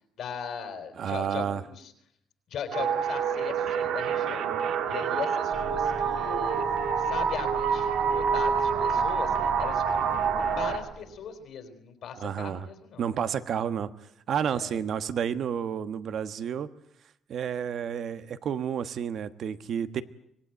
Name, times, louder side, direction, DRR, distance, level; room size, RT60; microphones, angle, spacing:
voice 1, 0.2-1.9 2.5-4.5 4.9-6.6 7.0-10.1 10.6-13.1 14.5-14.8, left 7 dB, 70° left, 8 dB, 4.1 m, -38 dB
voice 2, 1.0-1.6 12.2-12.7 13.0-13.9 14.3-16.7 17.3-20.0, right 8 dB, 65° right, 12 dB, 1.3 m, -30 dB
sound 1, 2.7-10.8, right 6 dB, 85° right, 2.2 m, -27 dB
sound 2, 5.5-11.4, right 4 dB, 40° right, 1.6 m, -41 dB
25.5 x 18.5 x 9.3 m, 0.75 s
cardioid pair, 90°, 0 cm